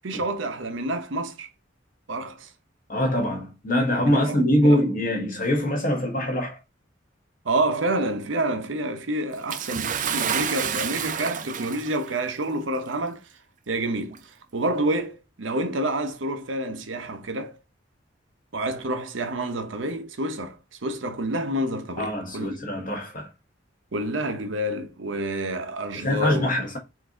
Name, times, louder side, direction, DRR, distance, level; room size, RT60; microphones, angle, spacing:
voice 1, 0.0-1.5 2.1-2.5 4.1-4.8 7.4-13.2 13.7-14.2 14.5-17.6 18.5-22.6 23.9-26.5, right 1 dB, 85° right, 0.8 m, -28 dB
voice 2, 2.9-6.6 22.0-23.3 25.9-26.8, equal, 45° left, 1.3 m, -23 dB
Bathtub (filling or washing) / Splash splatter, 9.5-12.1 13.0-13.1 14.1-14.2, right 8 dB, 45° right, 0.5 m, -29 dB
4.5 x 2.7 x 3.7 m
head